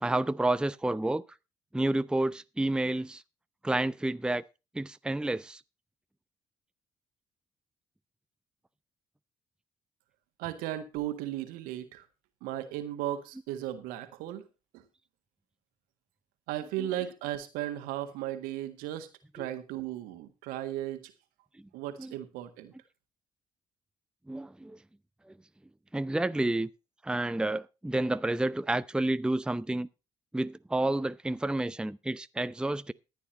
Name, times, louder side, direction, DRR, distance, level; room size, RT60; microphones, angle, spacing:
voice 1, 0.0-1.2 1.7-3.2 3.6-4.4 4.7-5.6 16.8-16.9 19.4-19.5 22.0-22.1 24.3-24.8 25.3-25.4 25.9-26.7 27.0-29.9 30.3-32.9, right 2 dB, 5° right, 0.6 m, -30 dB
voice 2, 10.4-12.0 12.4-14.5 14.7-14.8 16.5-19.1 19.3-21.1 21.7-22.7, right 13 dB, 75° right, 1.7 m, -36 dB
14.5 x 9.3 x 4.1 m
hypercardioid pair, 45°, 15 cm